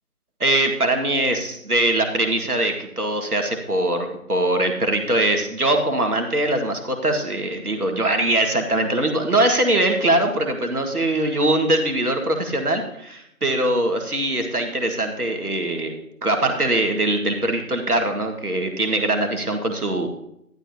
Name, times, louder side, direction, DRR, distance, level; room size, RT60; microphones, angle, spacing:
voice 1, 0.4-15.9 16.2-20.1, right 1 dB, 80° right, 4 dB, 1.9 m, -22 dB
12.5 x 11.5 x 2.8 m, 0.76 s
figure-of-eight pair, 165°, 44 cm